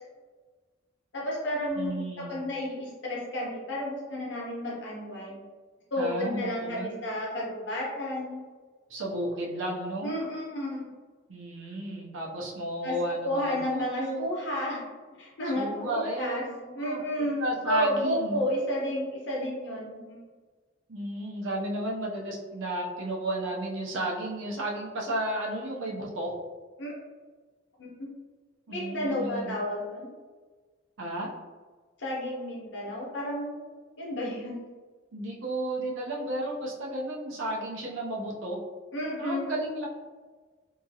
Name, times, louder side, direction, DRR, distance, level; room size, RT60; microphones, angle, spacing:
voice 1, 1.1-5.4 5.9-8.4 10.0-10.9 12.8-13.0 13.2-14.8 15.2-16.4 16.7-17.4 17.6-20.2 26.8-26.9 27.8-27.9 28.7-30.1 32.0-33.6 34.0-34.6 38.9-39.5, equal, 65° left, -4 dB, 1.0 m, -31 dB
voice 2, 1.8-2.4 6.0-6.9 8.9-10.1 11.3-14.3 15.5-18.4 20.9-26.3 28.7-29.6 31.0-31.3 35.1-38.6 39.2-39.9, right 1 dB, 85° right, -2 dB, 0.6 m, -33 dB
2.8 x 2.4 x 2.7 m, 1.4 s
head